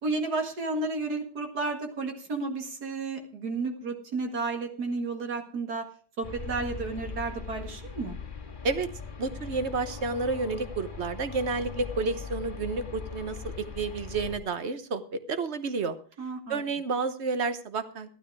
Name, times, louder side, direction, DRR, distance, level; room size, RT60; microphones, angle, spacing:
voice 1, 0.0-5.9 6.2-8.2 16.2-16.6, right 3 dB, 70° right, 4 dB, 2.4 m, -32 dB
sound 1, 6.2-14.4, left 5 dB, 30° left, 2.1 m, -40 dB
voice 2, 9.2-16.0 16.5-18.1, right 4 dB, 45° right, 11 dB, 1.3 m, -30 dB
13.0 x 12.0 x 4.7 m, 0.41 s
omnidirectional pair, 1.8 m